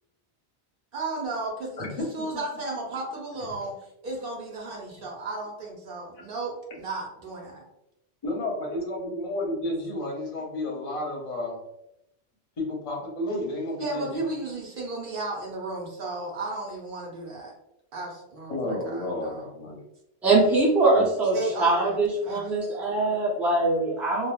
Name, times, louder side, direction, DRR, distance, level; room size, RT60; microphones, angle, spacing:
voice 1, 0.9-3.8 4.0-7.6 13.8-17.5 17.9-19.5 21.3-22.0 22.2-22.5, right 2 dB, 55° right, -1 dB, 0.9 m, -34 dB
voice 2, 8.2-11.6 12.6-14.3 18.5-19.8 20.9-21.1, left 1 dB, 40° left, -1 dB, 0.7 m, -31 dB
voice 3, 20.2-24.3, right 2 dB, ahead, -5 dB, 0.4 m, -22 dB
3.2 x 2.0 x 2.3 m, 0.85 s
omnidirectional pair, 1.2 m